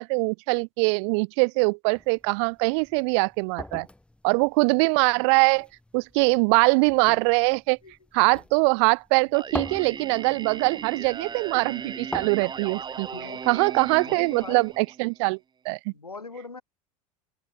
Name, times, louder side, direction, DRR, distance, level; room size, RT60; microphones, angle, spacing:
voice 1, 0.0-3.9 4.2-5.7 5.9-7.8 8.1-13.1 13.5-15.4 15.6-15.9, right 33 dB, 50° right, 0.6 m, -22 dB
sound 1, 1.9-14.8, left 1 dB, 5° left, 3.2 m, -44 dB
Singing, 9.3-15.3, right 6 dB, 25° right, 2.3 m, -37 dB
voice 2, 13.1-13.7 14.0-14.7 15.9-16.6, left 3 dB, 85° left, 3.2 m, -41 dB
figure-of-eight pair, 75°, 19 cm